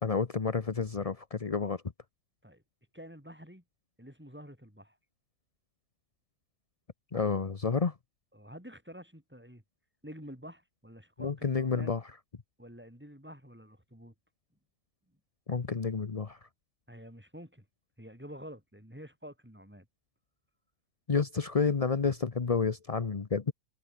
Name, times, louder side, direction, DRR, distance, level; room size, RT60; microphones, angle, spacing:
voice 1, 0.0-1.8 7.1-7.9 11.2-12.0 15.5-16.5 21.1-23.5, left 5 dB, 35° left, 0.5 m, -30 dB
voice 2, 2.9-3.6 4.0-5.0 8.3-9.6 10.0-12.0 12.6-14.1 16.9-17.6 18.0-19.9, equal, 5° right, 6.3 m, -48 dB
omnidirectional pair, 2.0 m